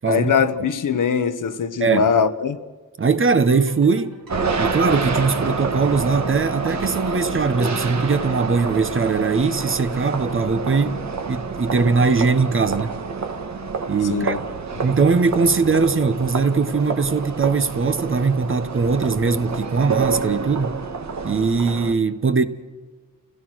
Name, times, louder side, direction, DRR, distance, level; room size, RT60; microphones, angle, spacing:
voice 1, 0.1-2.6 14.1-14.4 14.8-14.9, left 6 dB, 65° left, 1.2 m, -21 dB
voice 2, 3.0-4.2 4.6-11.0 11.3-13.0 13.9-14.4 14.8-20.8 21.2-22.5, right 4 dB, 35° right, 1.1 m, -20 dB
sound 1, 3.4-10.3, right 4 dB, 90° right, 3.6 m, -46 dB
sound 2, 4.3-21.9, right 4 dB, 55° right, 1.7 m, -28 dB
29.0 x 17.0 x 6.3 m
wide cardioid pair, 160°, 34 cm